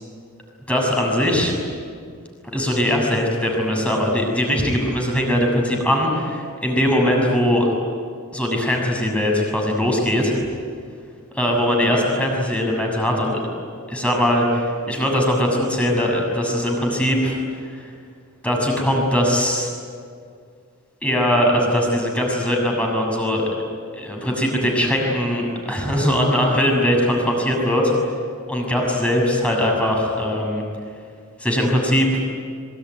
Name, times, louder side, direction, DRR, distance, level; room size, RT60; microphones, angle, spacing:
voice 1, 0.7-1.5 2.4-7.7 8.3-10.3 11.3-13.4 13.9-17.4 17.7-17.9 18.4-19.7 21.0-23.5 23.9-27.9 28.5-30.6 31.4-32.1, equal, 5° left, 0 dB, 6.9 m, -20 dB
26.0 x 23.5 x 9.6 m, 2.2 s
head